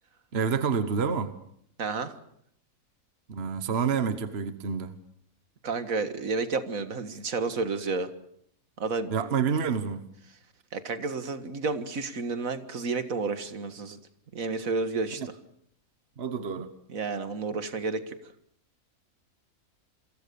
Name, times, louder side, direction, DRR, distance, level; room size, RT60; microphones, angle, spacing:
voice 1, 0.3-1.3 3.3-4.9 9.1-10.0 16.2-16.7, right 6 dB, 45° right, 1.5 m, -28 dB
voice 2, 1.8-2.2 5.6-8.1 8.8-9.1 10.7-14.0 14.3-15.2 16.9-18.2, right 4 dB, 65° right, 2.1 m, -31 dB
28.0 x 23.0 x 7.0 m
omnidirectional pair, 1.6 m